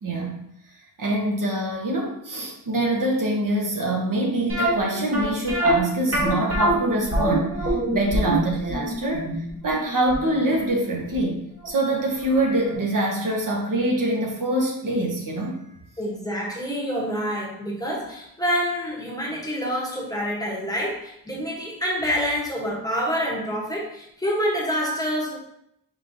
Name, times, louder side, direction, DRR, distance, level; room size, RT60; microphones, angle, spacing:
voice 1, 0.0-0.4 1.0-7.6 7.9-9.3 9.6-15.8, right 1 dB, 60° right, -1 dB, 1.0 m, -25 dB
sound 1, 4.5-11.4 11.6-11.7 12.3-12.4 12.7-12.8, right 1 dB, 35° right, 1.7 m, -24 dB
voice 2, 16.0-25.4, equal, 10° left, -3 dB, 0.9 m, -27 dB
5.1 x 3.7 x 2.6 m, 0.75 s
wide cardioid pair, 145°, 36 cm